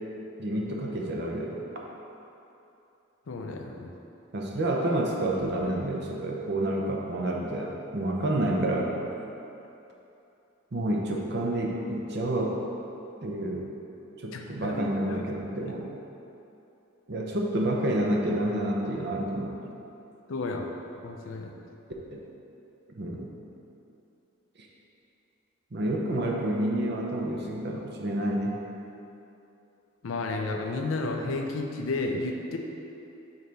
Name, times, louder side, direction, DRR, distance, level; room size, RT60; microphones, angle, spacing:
voice 1, 0.4-1.6 4.3-9.0 10.7-12.6 13.2-13.7 14.2-15.9 17.1-19.6 22.1-22.2 22.9-23.3 24.6-24.7 25.7-28.6, right 1 dB, 55° right, -1 dB, 0.7 m, -29 dB
voice 2, 3.3-3.9 14.3-15.2 15.5-15.8 20.3-20.7 21.0-21.5 30.0-32.6, left 3 dB, 85° left, 3 dB, 0.5 m, -32 dB
5.5 x 4.5 x 4.0 m, 2.9 s
head